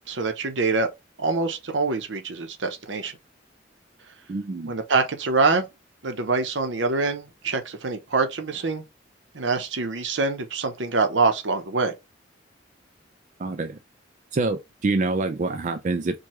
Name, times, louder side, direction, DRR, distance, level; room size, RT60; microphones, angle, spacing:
voice 1, 0.1-0.9 1.2-3.1 4.7-5.7 6.0-8.8 9.3-11.9, right 3 dB, 75° right, 0.8 m, -25 dB
voice 2, 4.3-4.7 13.4-13.8 14.3-16.2, right 3 dB, 40° right, 0.4 m, -26 dB
4.6 x 2.3 x 3.0 m
head